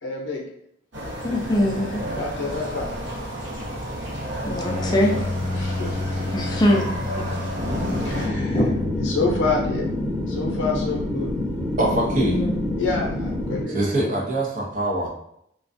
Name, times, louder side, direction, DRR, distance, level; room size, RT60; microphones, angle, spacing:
voice 1, 0.0-0.4 2.2-2.9 4.9-5.2 5.5-6.3 7.3-7.5 7.7-8.6 9.0-9.9 10.3-11.3 12.8-14.1, left 3 dB, 85° left, 0 dB, 0.6 m, -28 dB
sound 1, 0.9-8.3, equal, 80° right, 0.9 m, -32 dB
voice 2, 1.2-2.0 4.4-5.1 6.3-7.0 8.4-8.8 12.2-12.5, left 1 dB, 20° left, 0 dB, 0.4 m, -22 dB
sound 2, 4.6-9.8, left 2 dB, 30° right, 0.9 m, -30 dB
sound 3, 7.5-13.6, left 1 dB, 10° right, 1.1 m, -27 dB
voice 3, 11.8-12.4 13.7-15.1, right 1 dB, 45° right, -2 dB, 0.6 m, -23 dB
2.4 x 2.2 x 2.5 m, 0.74 s
head